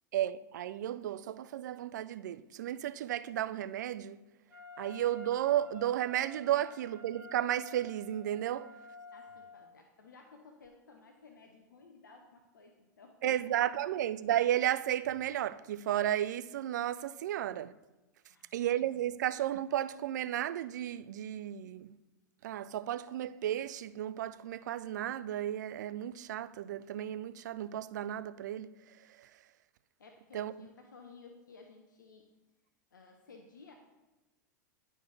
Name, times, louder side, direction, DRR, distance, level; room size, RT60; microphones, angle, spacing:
voice 1, 0.1-4.2 4.8-8.7 13.2-17.7 18.5-21.9 22.4-28.7 30.3-30.5, right 12 dB, 65° right, 0.4 m, -33 dB
Wind instrument woodwind instrument, 4.5-9.7, left 2 dB, 20° right, 2.5 m, -51 dB
voice 2, 9.1-13.5 13.8-13.9 18.3-18.7 30.0-32.3 32.9-33.7, left 4 dB, 80° left, 0.8 m, -56 dB
10.5 x 4.3 x 3.3 m
hypercardioid pair, 95°, 10 cm